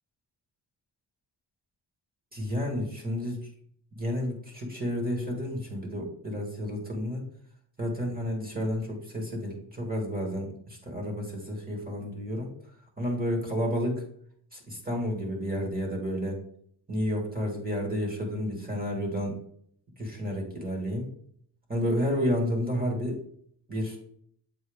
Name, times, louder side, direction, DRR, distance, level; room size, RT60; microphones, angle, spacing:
voice 1, 2.3-3.5 4.0-7.2 7.8-12.5 13.0-14.0 14.5-16.4 16.9-19.4 20.0-21.1 21.7-23.2 23.7-24.0, equal, 20° right, 0 dB, 1.5 m, -31 dB
7.3 x 4.4 x 3.4 m, 0.66 s
wide cardioid pair, 135°, 42 cm